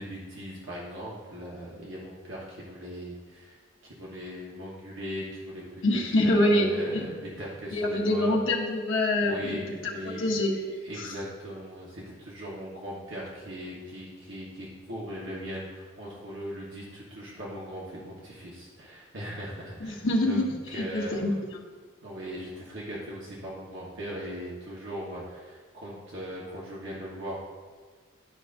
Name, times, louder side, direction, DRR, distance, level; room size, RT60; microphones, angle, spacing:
voice 1, 0.0-5.8 6.2-8.3 9.2-10.3 10.8-21.3 22.0-27.4, equal, 60° right, -5 dB, 1.3 m, -39 dB
voice 2, 5.8-7.1 7.7-9.6 10.0-10.6 11.0-11.1 19.8-21.4, left 1 dB, 70° left, -1 dB, 1.1 m, -25 dB
11.0 x 5.3 x 2.6 m, 1.5 s
head